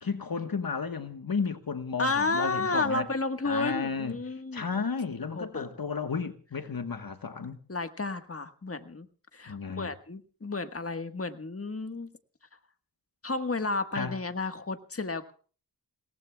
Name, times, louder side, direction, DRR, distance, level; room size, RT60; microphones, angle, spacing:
voice 1, 0.0-3.1 3.4-7.6 9.5-9.9 13.9-14.2, left 5 dB, 60° left, 1.3 m, -33 dB
voice 2, 2.0-4.8 5.3-5.7 7.7-9.1 9.3-12.1 13.2-15.3, left 3 dB, 35° left, 1.4 m, -32 dB
29.5 x 18.0 x 2.3 m
wide cardioid pair, 50°, 40 cm